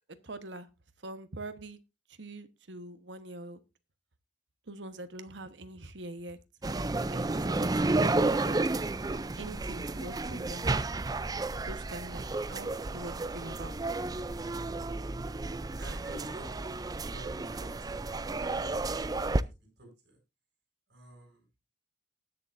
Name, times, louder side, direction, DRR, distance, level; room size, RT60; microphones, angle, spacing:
voice 1, 0.2-0.7 1.0-1.8 2.2-3.6 4.7-6.4 7.1-8.2 8.4-8.6 9.4-10.8 11.6-12.2 12.5-13.8, right 2 dB, 85° right, 1.2 m, -43 dB
sound 1, 6.6-19.4, right 2 dB, 20° right, 0.4 m, -32 dB
voice 2, 15.8-18.0 18.3-19.5 19.8-20.2 20.9-21.4, right 1 dB, 60° right, 7.4 m, -50 dB
19.5 x 6.9 x 2.6 m
head